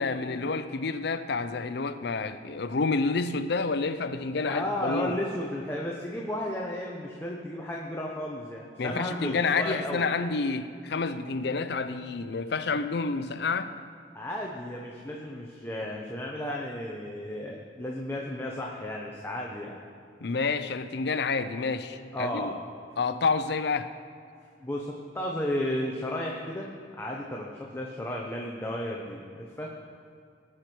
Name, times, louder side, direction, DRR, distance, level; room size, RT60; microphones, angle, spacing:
voice 1, 0.0-5.2 8.8-13.7 20.2-22.5 23.0-23.9, left 4 dB, 65° left, 11 dB, 0.6 m, -29 dB
voice 2, 4.5-10.1 14.1-19.8 22.1-22.5 24.6-26.7 27.0-29.2 29.6-29.7, left 1 dB, 15° left, -2 dB, 0.9 m, -33 dB
18.5 x 6.3 x 4.5 m, 2.3 s
head